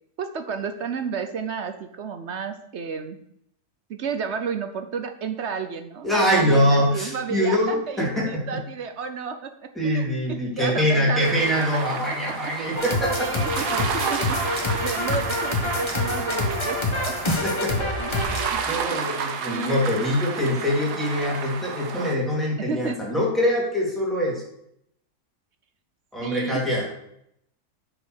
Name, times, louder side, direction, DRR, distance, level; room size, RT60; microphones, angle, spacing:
voice 1, 0.2-3.2 3.9-11.8 12.1-12.5 13.2-14.4 14.7-17.2 18.0-18.6 19.5-19.8 22.6-23.0 26.2-26.6, right 6 dB, 55° right, 8 dB, 0.9 m, -32 dB
voice 2, 6.0-8.6 9.7-13.3 17.4-17.9 18.7-24.4 26.1-26.9, equal, ahead, -5 dB, 3.0 m, -24 dB
sound 1, 11.2-22.1, right 6 dB, 80° right, 1.5 m, -32 dB
sound 2, 12.8-18.5, left 2 dB, 20° left, 1.2 m, -26 dB
9.1 x 5.2 x 6.4 m, 0.74 s
omnidirectional pair, 1.7 m